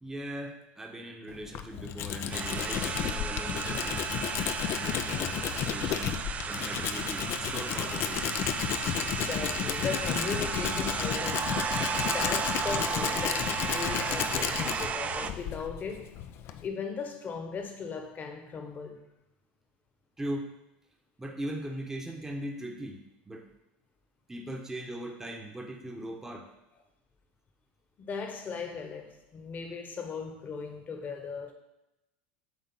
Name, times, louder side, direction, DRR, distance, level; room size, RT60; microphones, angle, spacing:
voice 1, 0.0-4.1 4.7-5.4 5.7-6.2 6.5-8.2 20.2-20.5 21.2-23.0 23.3-23.5 24.3-26.5, right 1 dB, 10° right, 2 dB, 1.0 m, -39 dB
Tools, 1.3-16.7, left 10 dB, 50° left, 0.5 m, -33 dB
sound 1, 2.3-15.3, right 5 dB, 25° right, 0.5 m, -34 dB
voice 2, 9.0-11.6 12.0-16.1 16.6-19.0 28.0-31.5, left 5 dB, 30° left, 6 dB, 1.2 m, -38 dB
8.1 x 3.7 x 5.5 m, 0.91 s
supercardioid pair, 110°, 5 cm